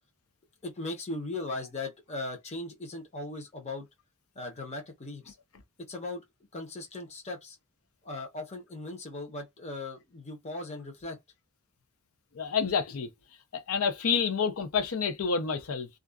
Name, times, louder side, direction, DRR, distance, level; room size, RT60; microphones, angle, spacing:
voice 1, 0.6-3.9 4.4-5.3 5.9-6.2 6.5-7.6 8.0-11.2, left 2 dB, 30° left, 0.8 m, -38 dB
voice 2, 12.3-13.1 13.5-15.9, left 6 dB, 80° left, 0.6 m, -28 dB
2.4 x 2.3 x 2.2 m
head